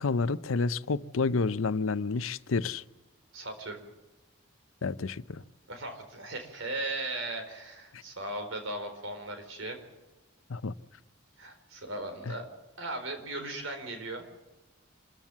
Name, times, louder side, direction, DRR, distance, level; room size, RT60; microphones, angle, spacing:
voice 1, 0.0-2.8 4.8-5.4 10.5-10.7 12.3-12.4, left 4 dB, 85° left, 0.6 m, -29 dB
voice 2, 3.3-3.8 5.7-9.8 11.4-12.4 12.8-14.2, right 2 dB, 75° right, 4.3 m, -37 dB
26.5 x 14.5 x 7.3 m
head